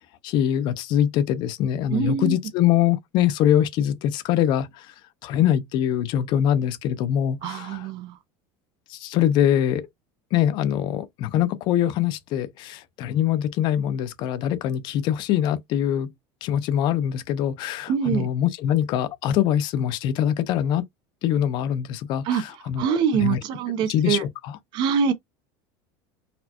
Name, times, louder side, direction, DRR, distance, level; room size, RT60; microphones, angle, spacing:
voice 1, 0.2-4.7 5.2-7.9 8.9-9.9 10.3-16.1 16.4-20.8 21.2-23.4 23.9-24.5, left 10 dB, 40° left, 0.5 m, -23 dB
voice 2, 1.9-2.4 7.4-8.1 17.9-18.3 22.2-22.4 22.8-24.2 24.7-25.1, right 7 dB, 40° right, 0.6 m, -24 dB
4.1 x 2.2 x 2.8 m
cardioid pair, 170°, 12 cm